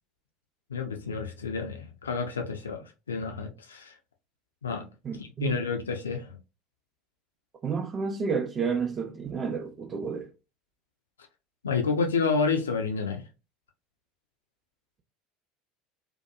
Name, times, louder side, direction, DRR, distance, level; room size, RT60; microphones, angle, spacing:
voice 1, 0.7-4.0 4.6-4.9 5.2-6.4 11.6-13.2, left 5 dB, 75° left, 0.3 m, -29 dB
voice 2, 5.0-5.6 7.6-10.3, right 5 dB, 25° right, 0.6 m, -30 dB
2.7 x 2.2 x 2.2 m
figure-of-eight pair, 70°, 0 cm